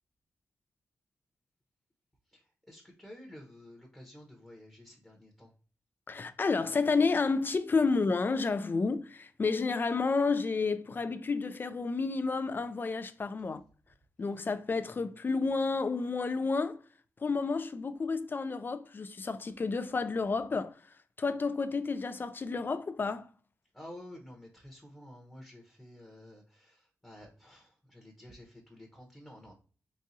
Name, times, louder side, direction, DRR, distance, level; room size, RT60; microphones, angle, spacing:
voice 1, 2.7-5.5 23.7-29.5, left 1 dB, 10° left, 0.9 m, -51 dB
voice 2, 6.1-13.6 14.2-16.8 17.2-23.3, left 4 dB, 35° left, 0.3 m, -30 dB
4.0 x 2.4 x 2.6 m
cardioid pair, 85°, 6 cm